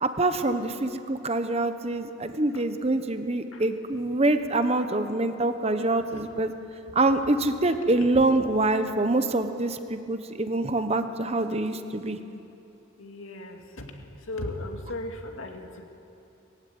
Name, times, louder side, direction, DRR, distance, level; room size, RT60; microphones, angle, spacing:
voice 1, 0.0-6.5 6.9-12.2, right 2 dB, 30° right, 9 dB, 1.0 m, -25 dB
voice 2, 13.0-13.8 14.3-15.8, left 2 dB, 80° left, 3 dB, 2.2 m, -37 dB
20.0 x 15.0 x 9.5 m, 2.8 s
head